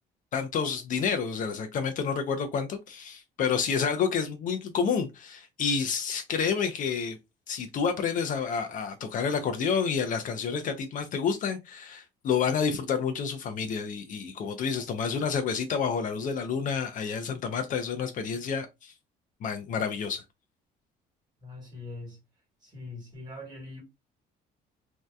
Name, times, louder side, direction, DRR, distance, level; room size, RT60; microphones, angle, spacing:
voice 1, 0.3-7.2 7.5-18.9 19.4-20.2, left 6 dB, 50° left, 0.4 m, -29 dB
voice 2, 21.4-22.2 22.6-23.8, left 2 dB, 25° right, 1.3 m, -42 dB
2.6 x 2.2 x 2.2 m
cardioid pair, 110°, 17 cm